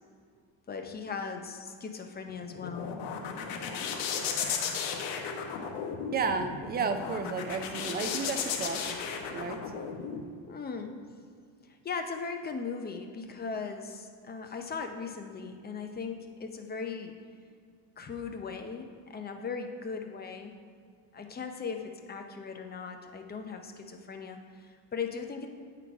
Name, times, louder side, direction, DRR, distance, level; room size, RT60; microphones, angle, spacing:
voice 1, 0.7-2.9 10.5-10.9 11.7-17.1 18.0-20.6 21.1-25.5, left 5 dB, 20° left, 5 dB, 0.6 m, -38 dB
sound 1, 2.3-10.2, left 6 dB, 85° left, 0.9 m, -35 dB
voice 2, 6.1-9.7, right 5 dB, 25° right, 7 dB, 0.4 m, -33 dB
9.5 x 3.9 x 4.7 m, 2.1 s
cardioid pair, 125°, 44 cm